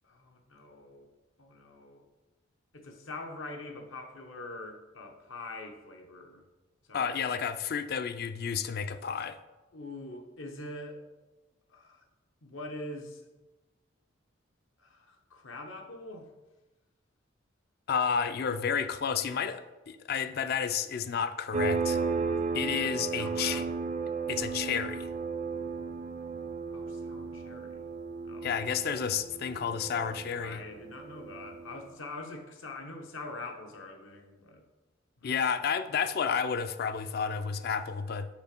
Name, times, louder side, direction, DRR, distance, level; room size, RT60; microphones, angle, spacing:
voice 1, 0.0-1.1 1.4-2.0 2.7-6.5 6.9-7.4 9.7-11.0 11.7-12.0 12.4-13.3 14.8-16.3 22.4-23.8 24.4-24.5 26.7-27.9 28.2-28.6 30.4-34.6 35.2-35.3, left 2 dB, 75° left, 4 dB, 0.9 m, -44 dB
voice 2, 6.9-9.4 17.9-22.0 22.5-23.7 24.3-25.1 28.4-30.6 35.2-38.3, left 6 dB, 50° left, 12 dB, 0.4 m, -31 dB
sound 1, 21.5-31.9, right 4 dB, 35° right, 0.3 m, -34 dB
6.1 x 4.1 x 5.1 m, 1.1 s
head